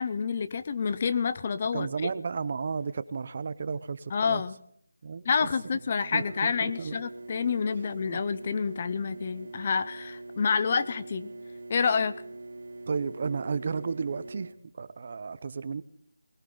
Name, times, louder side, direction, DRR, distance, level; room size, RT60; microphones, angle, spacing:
voice 1, 0.0-2.1 4.1-4.6 5.2-11.3 11.7-12.1, left 5 dB, 35° left, 14 dB, 0.7 m, -28 dB
voice 2, 1.7-4.4 5.0-5.5 6.1-7.0 8.1-8.2 12.9-15.8, right 5 dB, 40° right, 15 dB, 0.7 m, -33 dB
sound 1, 5.3-14.5, right 2 dB, 55° right, 2.8 m, -43 dB
20.0 x 18.0 x 3.9 m, 0.65 s
figure-of-eight pair, 170°, 0 cm